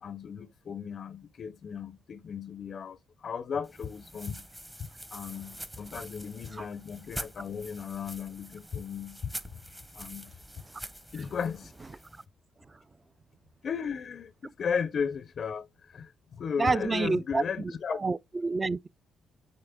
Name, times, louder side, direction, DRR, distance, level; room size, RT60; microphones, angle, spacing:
voice 1, 0.0-4.5 4.8-9.3 9.9-10.4 11.1-12.0 13.6-18.0, left 6 dB, 50° left, 0.4 m, -36 dB
sound 1, 3.6-12.2, right 1 dB, 10° right, 0.8 m, -45 dB
voice 2, 16.6-17.4 18.0-18.9, right 3 dB, 25° right, 0.3 m, -28 dB
6.7 x 4.1 x 3.5 m
cardioid pair, 90°, 0 cm